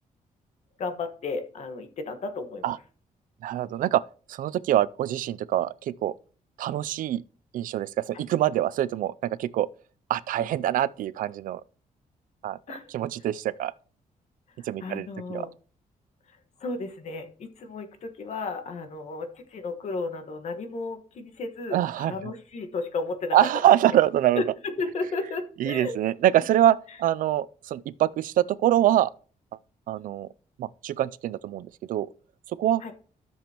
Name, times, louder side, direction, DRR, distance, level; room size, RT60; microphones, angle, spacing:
voice 1, 0.8-2.7 8.1-8.2 12.7-12.9 14.6-15.5 16.3-23.4 23.9-24.0 24.3-26.0 32.8-32.9, left 3 dB, 55° left, 1.4 m, -34 dB
voice 2, 3.4-4.0 4.3-6.1 6.6-7.2 7.5-9.7 10.1-11.6 12.4-12.6 12.9-13.7 14.6-15.5 21.7-22.1 23.3-24.4 25.6-29.1 29.9-30.3 30.6-32.1 32.5-32.8, right 12 dB, 75° right, 0.4 m, -24 dB
13.5 x 7.1 x 2.9 m
cardioid pair, 155°, 14 cm